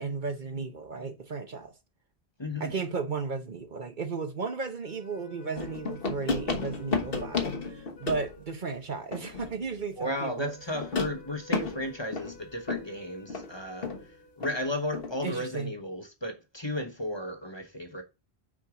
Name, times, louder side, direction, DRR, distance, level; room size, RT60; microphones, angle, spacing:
voice 1, 0.0-1.7 2.6-10.5 15.2-15.7, right 4 dB, 50° right, 1.0 m, -34 dB
voice 2, 2.4-2.7 9.9-18.0, left 1 dB, 25° left, 1.0 m, -34 dB
sound 1, 4.6-15.0, left 3 dB, 80° left, 2.9 m, -54 dB
sound 2, 5.6-8.4 9.1-9.7 10.7-13.0 13.3-13.5 13.8-14.0 14.4-14.6 14.9-15.2, left 4 dB, 60° left, 1.4 m, -33 dB
6.2 x 4.5 x 5.0 m
omnidirectional pair, 1.1 m